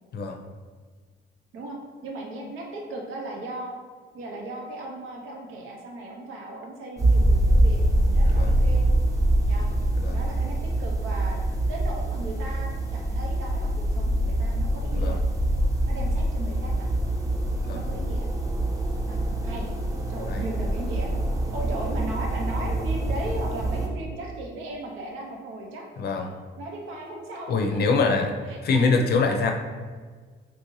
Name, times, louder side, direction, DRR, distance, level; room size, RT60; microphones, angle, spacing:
voice 1, 2.0-3.7 4.1-8.8 9.5-9.7 10.1-11.4 11.7-15.2 15.9-16.9 17.7-18.3 19.1-19.2 19.4-19.7 20.1-21.1 21.5-25.8 26.6-27.6 28.5-28.8 29.2-29.4, right 1 dB, 90° right, -1 dB, 0.7 m, -37 dB
sound 1, 7.0-23.9, right 1 dB, 15° right, 0.6 m, -24 dB
voice 2, 26.0-26.3 27.5-28.3 28.6-29.5, left 4 dB, 55° left, 3 dB, 0.5 m, -24 dB
3.2 x 2.6 x 3.0 m, 1.5 s
cardioid pair, 90°, 20 cm